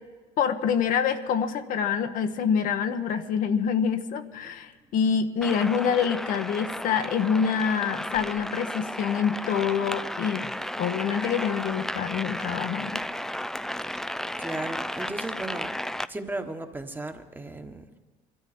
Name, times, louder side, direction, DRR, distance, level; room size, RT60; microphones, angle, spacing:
voice 1, 0.4-10.5 10.8-13.0, left 7 dB, 65° left, 8 dB, 1.2 m, -26 dB
sound 1, 5.4-16.1, left 1 dB, 5° left, 0.5 m, -34 dB
voice 2, 14.4-15.7 16.1-18.0, right 2 dB, 15° right, 6 dB, 1.4 m, -36 dB
23.5 x 13.0 x 4.3 m, 1.4 s
supercardioid pair, 85°, 15 cm